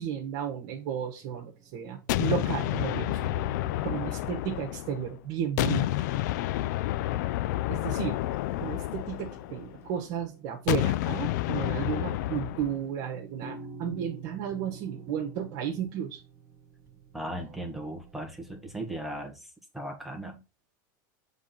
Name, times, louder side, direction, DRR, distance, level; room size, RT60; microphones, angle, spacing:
voice 1, 0.0-3.2 3.8-6.3 7.7-8.2 8.6-16.2, right 8 dB, 45° right, 0 dB, 1.6 m, -33 dB
sound 1, 0.6-19.3, right 5 dB, 20° right, 1.0 m, -50 dB
sound 2, 2.1-5.1 5.6-9.8 10.7-12.8, left 15 dB, 60° left, 0.4 m, -29 dB
voice 2, 17.1-20.4, right 1 dB, ahead, 2 dB, 1.4 m, -37 dB
7.2 x 3.9 x 4.3 m, 0.28 s
supercardioid pair, 155°, 11 cm